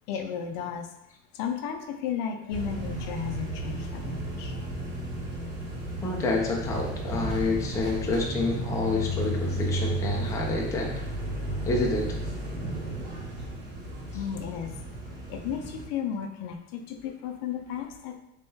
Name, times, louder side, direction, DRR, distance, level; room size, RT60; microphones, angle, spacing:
voice 1, 0.1-0.9 1.3-4.6 14.1-14.7 15.3-18.2, left 8 dB, 60° left, 6 dB, 0.5 m, -34 dB
sound 1, 2.5-15.8, right 1 dB, 40° right, 1.1 m, -33 dB
voice 2, 6.0-10.9 11.6-12.2, left 3 dB, 10° left, -1 dB, 0.4 m, -28 dB
3.6 x 3.3 x 2.7 m, 0.81 s
cardioid pair, 155°, 31 cm